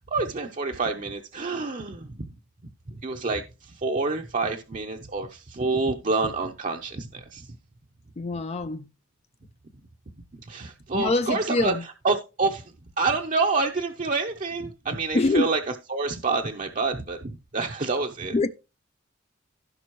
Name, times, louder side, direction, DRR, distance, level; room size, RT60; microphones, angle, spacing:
voice 1, 0.1-2.3 3.0-3.4 3.8-7.5 10.5-11.7 12.0-12.6 13.0-15.6 15.9-18.5, right 3 dB, 40° right, 0.7 m, -27 dB
voice 2, 8.2-8.9 10.9-11.8 15.1-15.5 18.3-18.5, left 3 dB, 30° left, 0.4 m, -24 dB
16.0 x 5.3 x 3.1 m
head